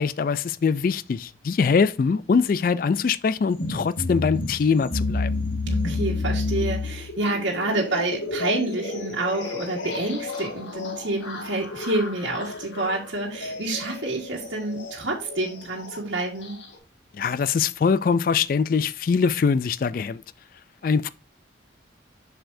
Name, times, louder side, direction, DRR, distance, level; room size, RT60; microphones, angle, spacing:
voice 1, 0.0-5.3 17.1-20.2 20.8-21.1, left 5 dB, 50° left, 0.3 m, -23 dB
sound 1, 3.5-16.8, left 2 dB, 85° left, 1.7 m, -31 dB
voice 2, 5.7-16.5, right 2 dB, 90° right, 1.6 m, -28 dB
7.7 x 6.6 x 2.6 m
head